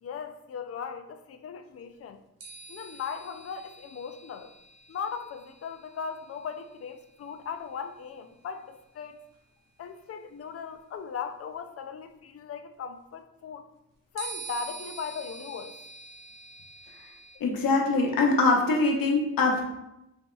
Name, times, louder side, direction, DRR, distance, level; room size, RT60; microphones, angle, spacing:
voice 1, 0.0-2.2 2.7-4.5 4.9-9.2 9.8-13.7 14.1-15.7, left 6 dB, 45° left, 8 dB, 0.4 m, -38 dB
sound 1, 2.4-8.0 9.3-9.4 14.2-17.4, right 4 dB, 65° right, 1.0 m, -46 dB
voice 2, 17.4-19.7, left 3 dB, 80° left, 1 dB, 0.9 m, -23 dB
5.3 x 2.7 x 2.3 m, 0.88 s
cardioid pair, 85°, 34 cm